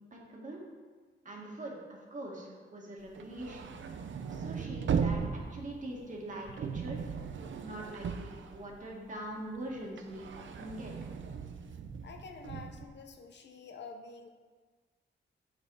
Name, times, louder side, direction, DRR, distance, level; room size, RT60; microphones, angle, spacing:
voice 1, 0.1-0.6 1.2-3.7 4.3-7.1 7.6-11.1, right 1 dB, 40° right, -2 dB, 1.9 m, -43 dB
sound 1, 3.1-9.2 9.5-12.8, right 6 dB, 70° right, 0.7 m, -37 dB
voice 2, 12.0-14.3, left 4 dB, 60° left, 5 dB, 0.8 m, -48 dB
8.1 x 6.4 x 4.8 m, 1.4 s
wide cardioid pair, 145°, 20 cm